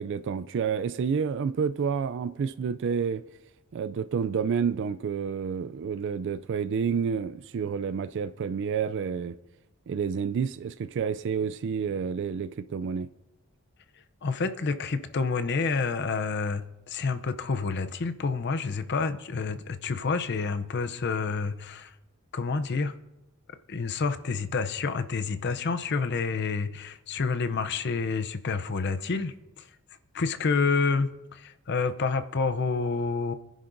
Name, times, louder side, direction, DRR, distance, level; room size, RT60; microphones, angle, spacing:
voice 1, 0.0-3.2 3.7-9.3 9.9-13.1, right 6 dB, 55° right, 0.3 m, -29 dB
voice 2, 14.2-21.9 22.3-22.9 23.7-29.7 30.1-33.3, left 4 dB, 50° left, 0.6 m, -28 dB
25.5 x 10.0 x 2.6 m
head